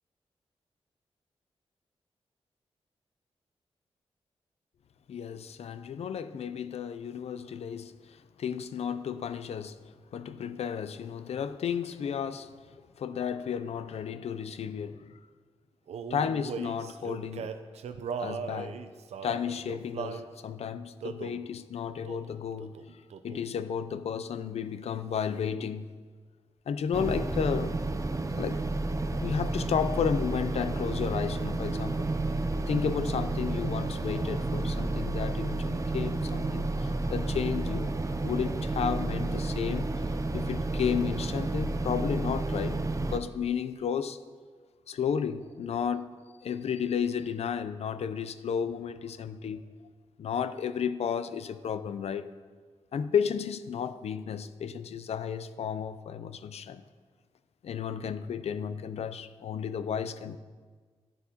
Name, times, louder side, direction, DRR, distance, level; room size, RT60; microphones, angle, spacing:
voice 1, 5.1-9.8 10.1-12.5 13.0-15.1 16.1-17.5 18.2-18.8 19.2-22.8 23.2-25.9 26.7-27.9 28.4-28.6 29.1-32.1 32.7-37.9 38.2-39.9 40.3-44.2 44.9-46.1 46.4-49.6 50.2-52.3 52.9-56.8 57.6-60.4, left 7 dB, 75° left, 0.4 m, -33 dB
Male singing, 15.9-20.3 21.0-21.4 22.0-22.3 22.6-23.5, right 6 dB, 85° right, 0.5 m, -38 dB
sound 1, 26.9-43.2, right 2 dB, 30° right, 0.6 m, -31 dB
10.5 x 9.7 x 2.8 m
cardioid pair, 70°, 11 cm